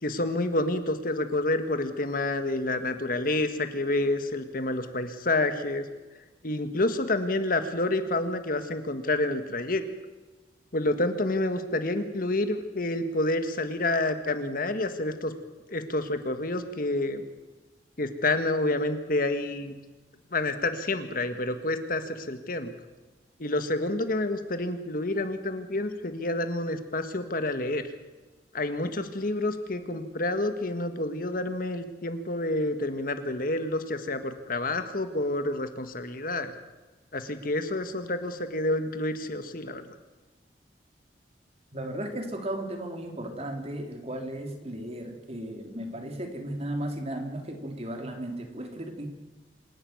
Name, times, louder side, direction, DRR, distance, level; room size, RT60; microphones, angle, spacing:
voice 1, 0.0-5.8 6.4-9.8 10.7-15.3 15.7-17.2 18.0-19.7 20.3-22.7 23.4-27.8 28.5-36.5 37.1-39.9, left 2 dB, 55° left, 9 dB, 1.7 m, -28 dB
voice 2, 41.7-49.1, right 1 dB, 35° right, 4 dB, 3.3 m, -35 dB
26.5 x 11.5 x 9.5 m, 1.2 s
head